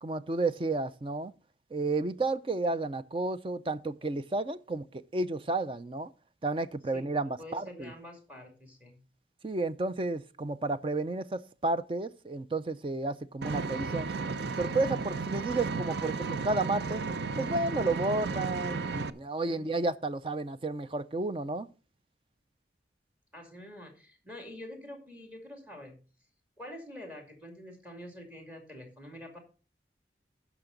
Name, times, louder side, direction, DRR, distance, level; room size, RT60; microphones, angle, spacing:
voice 1, 0.0-1.3 1.7-6.1 6.4-7.9 9.4-14.1 14.6-17.0 17.4-21.7, right 2 dB, 30° right, 0.4 m, -32 dB
voice 2, 6.9-9.0 19.4-19.8 23.3-26.0 26.6-29.4, left 1 dB, 10° right, 2.3 m, -46 dB
Vehicle, 13.4-19.1, right 4 dB, 75° right, 0.6 m, -34 dB
16.0 x 6.0 x 3.8 m
head